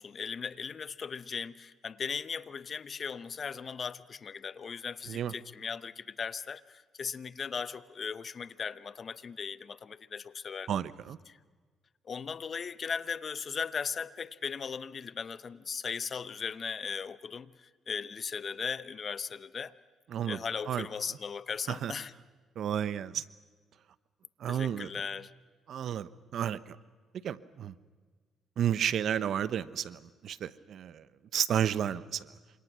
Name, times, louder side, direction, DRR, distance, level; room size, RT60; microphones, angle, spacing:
voice 1, 0.0-10.7 11.3-11.4 12.0-19.7 20.3-22.1 24.5-25.3, left 6 dB, 45° left, 0.9 m, -38 dB
voice 2, 10.7-11.2 20.1-20.4 20.7-20.9 21.7-21.9 22.6-23.2 24.4-24.9 25.7-26.8 27.2-27.7 28.6-31.1 31.3-32.3, right 9 dB, 65° right, 0.9 m, -32 dB
28.0 x 26.0 x 6.1 m
supercardioid pair, 70°, 0 cm